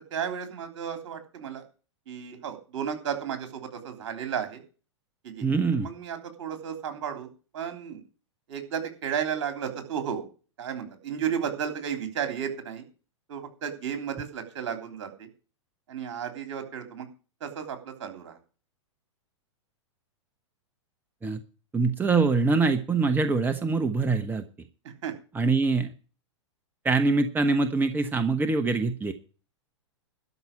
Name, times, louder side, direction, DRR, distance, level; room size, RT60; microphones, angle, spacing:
voice 1, 0.1-1.6 2.1-4.6 5.2-5.5 5.8-7.3 7.5-8.0 8.5-10.3 10.6-12.9 13.3-15.3 15.9-17.1 17.4-18.4 25.0-25.1, right 8 dB, 60° right, 6 dB, 3.5 m, -33 dB
voice 2, 5.4-5.9 21.2-21.4 21.7-24.4 25.3-25.9 26.8-29.1, right 4 dB, 10° right, 9 dB, 1.1 m, -24 dB
12.5 x 6.1 x 8.7 m, 0.36 s
hypercardioid pair, 105°, 16 cm